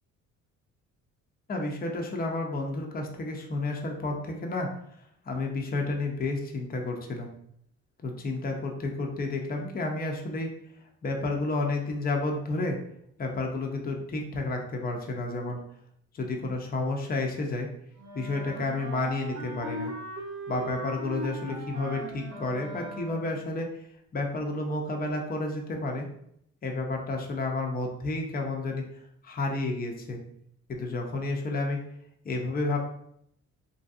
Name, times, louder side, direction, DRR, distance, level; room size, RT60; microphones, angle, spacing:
voice 1, 1.5-4.7 5.3-7.3 8.0-10.5 11.0-12.8 13.2-15.6 16.1-17.7 18.1-19.9 20.5-23.8 24.1-26.1 26.6-30.2 30.7-31.8 32.2-32.8, left 2 dB, 30° left, 2 dB, 0.6 m, -31 dB
Wind instrument woodwind instrument, 18.0-23.4, right 1 dB, 70° right, 0.7 m, -39 dB
3.0 x 2.7 x 2.4 m, 0.71 s
cardioid pair, 90°, 30 cm